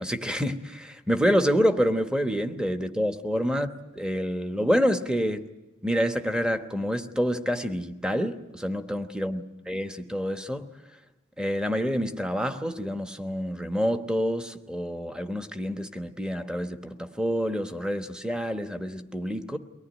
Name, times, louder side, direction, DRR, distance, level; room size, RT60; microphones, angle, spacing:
voice 1, 0.0-3.7 4.0-5.4 5.8-10.7 11.4-19.6, equal, 5° right, 1.1 m, -27 dB
23.5 x 18.0 x 10.0 m
head